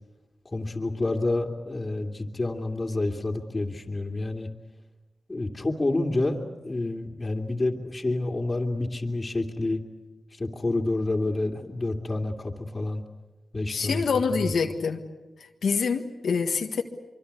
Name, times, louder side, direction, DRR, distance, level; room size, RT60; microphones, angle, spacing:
voice 1, 0.5-4.5 5.3-9.8 10.3-13.0 13.5-14.0 14.3-14.5, left 2 dB, 35° left, -2 dB, 2.6 m, -28 dB
voice 2, 13.7-15.1 15.6-16.8, left 5 dB, 80° left, 5 dB, 1.6 m, -26 dB
24.5 x 24.0 x 8.3 m, 1.1 s
cardioid pair, 50°, 0 cm